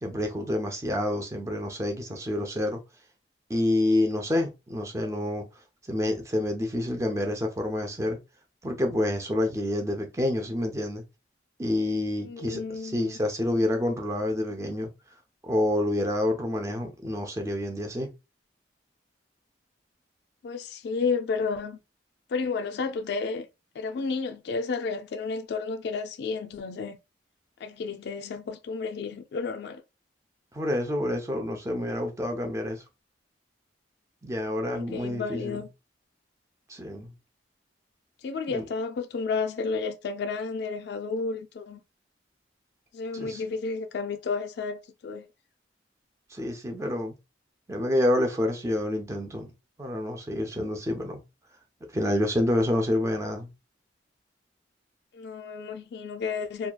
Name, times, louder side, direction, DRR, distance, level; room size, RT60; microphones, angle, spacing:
voice 1, 0.0-2.8 3.5-5.4 5.9-8.2 8.6-11.0 11.6-14.9 15.4-18.1 30.5-32.8 34.2-35.6 36.7-37.1 38.5-38.6 43.1-43.4 46.3-47.1 47.7-49.5 49.8-51.2 51.9-53.5, left 1 dB, 15° right, 0.5 m, -28 dB
voice 2, 12.2-13.2 20.4-21.8 22.3-23.5 23.8-27.0 27.6-29.8 34.7-35.7 38.2-41.8 42.9-45.3 55.1-56.7, left 4 dB, 60° left, 0.3 m, -32 dB
2.8 x 2.3 x 2.2 m
head